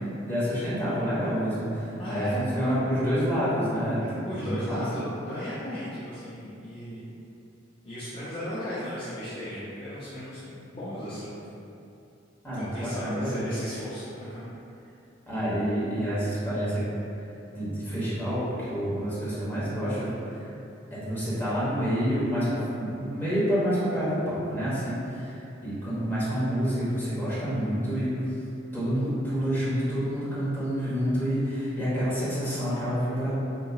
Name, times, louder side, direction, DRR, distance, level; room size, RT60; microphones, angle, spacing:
voice 1, 0.2-4.0 4.3-4.8 12.4-13.4 15.3-16.8 17.5-20.1 20.3-20.5 20.9-28.2 28.7-33.3, equal, 10° left, -11 dB, 1.1 m, -28 dB
voice 2, 2.0-2.7 4.2-7.1 7.8-11.3 12.5-14.4, left 1 dB, 30° left, -11 dB, 0.5 m, -36 dB
3.8 x 2.8 x 2.3 m, 2.8 s
head